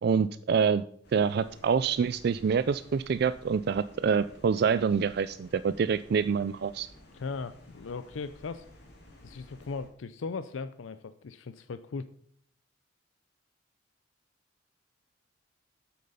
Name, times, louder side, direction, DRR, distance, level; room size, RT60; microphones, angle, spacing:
voice 1, 0.0-0.8 1.1-6.9, right 6 dB, 55° right, 14 dB, 0.3 m, -26 dB
sound 1, 1.0-9.9, left 1 dB, 60° left, 3.2 m, -54 dB
voice 2, 7.1-8.6 9.2-12.1, left 4 dB, 90° left, 12 dB, 0.5 m, -38 dB
8.5 x 7.9 x 5.5 m, 0.63 s
head